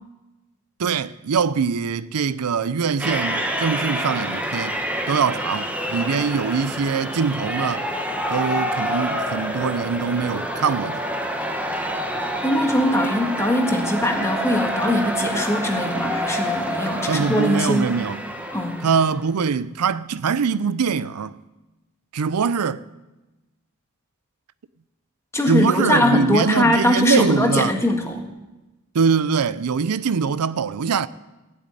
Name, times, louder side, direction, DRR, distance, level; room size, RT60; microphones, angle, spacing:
voice 1, 0.8-4.8 5.1-7.9 8.3-11.0 17.1-18.2 18.8-21.4 22.1-22.8 25.5-27.8 28.9-31.1, right 6 dB, 85° right, 0.5 m, -23 dB
sound 1, 3.0-19.2, equal, 5° right, 1.2 m, -27 dB
voice 2, 12.4-17.9 18.5-18.8 25.3-28.3, left 1 dB, 10° left, 1.6 m, -21 dB
16.0 x 8.0 x 9.6 m
head